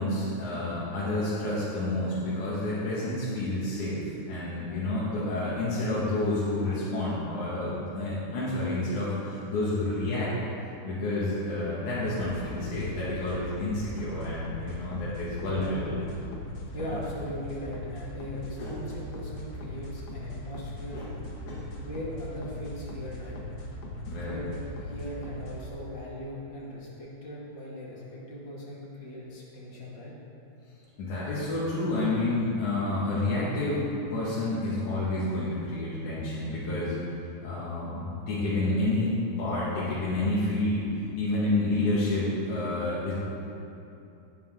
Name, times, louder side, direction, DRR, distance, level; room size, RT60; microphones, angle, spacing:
voice 1, 0.0-10.3 10.8-16.0 16.7-16.9 18.6-18.8 20.9-21.1 21.5-21.6 24.1-24.4 31.0-37.0 37.4-43.1, left 2 dB, 75° left, -9 dB, 3.5 m, -29 dB
sound 1, 12.1-25.7, left 1 dB, 60° left, 2.1 m, -39 dB
voice 2, 15.4-15.8 16.7-21.0 21.8-23.4 24.2-30.1, equal, 40° left, -5 dB, 2.6 m, -39 dB
17.0 x 8.7 x 3.8 m, 2.7 s
omnidirectional pair, 3.5 m